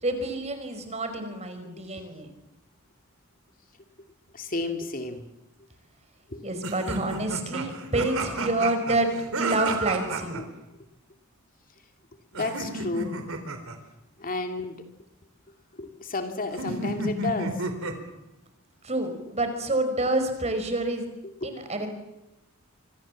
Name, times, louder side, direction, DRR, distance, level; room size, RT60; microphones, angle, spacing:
voice 1, 0.0-2.3 6.4-9.1 9.4-10.5 18.8-21.0 21.4-21.9, right 2 dB, 30° right, 7 dB, 5.1 m, -28 dB
voice 2, 4.3-5.2 6.3-6.5 12.3-13.2 14.2-14.8 15.7-17.9 21.4-21.7, left 3 dB, 40° left, 5 dB, 2.5 m, -32 dB
sound 1, 6.6-10.4 12.3-13.8 16.6-18.1, right 2 dB, 70° right, 4.0 m, -32 dB
26.5 x 26.0 x 7.5 m, 0.89 s
head